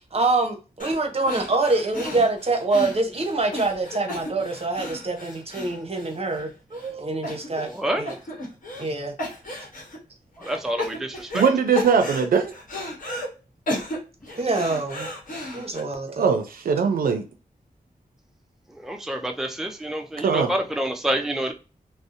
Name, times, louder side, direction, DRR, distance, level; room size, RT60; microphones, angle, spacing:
voice 1, 0.1-7.7 7.9-8.1 8.8-9.1 14.3-15.1 15.5-16.3, right 3 dB, 45° right, 0.7 m, -25 dB
sound 1, 0.8-1.0 1.3-6.4 6.8-6.9 7.2-7.8 8.1-8.9 9.2-10.0 10.4-11.5 11.7-13.3 13.7-15.8, left 1 dB, 65° left, 0.9 m, -33 dB
voice 2, 7.7-8.0 10.4-11.4 18.8-21.5, right 1 dB, 5° right, 0.4 m, -27 dB
voice 3, 11.3-12.5 16.1-17.2 20.2-20.5, right 6 dB, 85° right, 0.4 m, -21 dB
2.6 x 2.0 x 2.4 m
cardioid pair, 60°, 15 cm